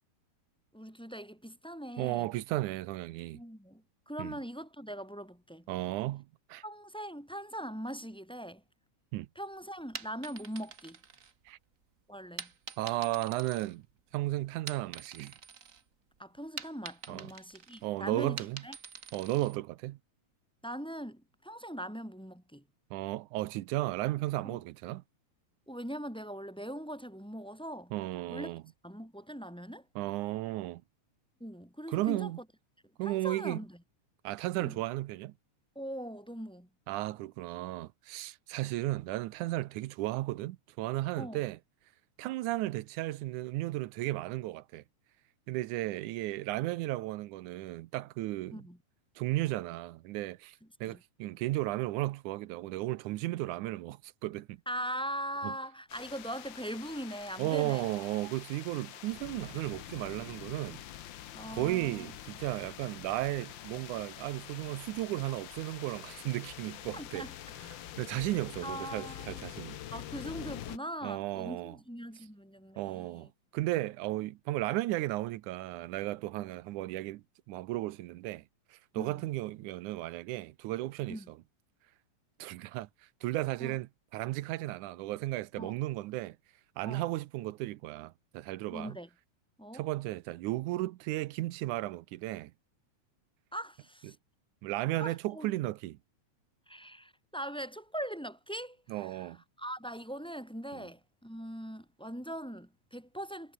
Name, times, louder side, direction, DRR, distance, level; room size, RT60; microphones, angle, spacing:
voice 1, 0.7-2.3 3.3-5.7 6.6-8.6 9.3-11.0 12.1-12.5 16.2-18.8 20.6-22.6 24.4-24.6 25.7-27.9 28.3-28.5 28.8-29.9 31.4-32.3 33.0-33.8 34.6-34.8 35.7-36.7 41.2-41.4 48.5-48.8 50.6-51.0 54.6-57.9 61.3-62.1 66.9-67.3 68.6-69.4 69.9-73.3 78.9-79.2 81.1-81.3 83.6-83.8 85.6-85.8 86.8-87.0 88.7-89.1 89.6-89.8 93.5-94.2 95.0-95.5 96.7-103.5, equal, ahead, 3.2 m, -41 dB
voice 2, 2.0-3.4 4.2-4.4 5.7-6.6 9.1-9.3 11.5-11.6 12.8-13.9 14.1-15.3 17.1-17.3 17.8-18.6 19.1-20.0 22.9-25.0 27.9-28.6 30.0-30.8 31.9-32.4 33.0-33.6 34.2-35.3 36.9-41.6 42.2-44.8 45.5-48.6 49.2-54.6 55.4-55.5 57.4-60.8 61.5-67.3 67.7-69.8 71.0-71.8 72.8-78.4 78.7-81.4 82.4-82.9 83.2-86.4 86.8-89.0 89.7-92.5 94.0-94.2 94.6-96.0 98.9-99.4 100.8-100.9, right 17 dB, 85° right, 2.3 m, -34 dB
sound 1, 9.8-11.7 12.4-14.2 14.5-15.8 16.1-19.6, right 6 dB, 40° right, 1.3 m, -46 dB
sound 2, 55.9-70.8, left 12 dB, 90° left, 1.0 m, -46 dB
omnidirectional pair, 3.4 m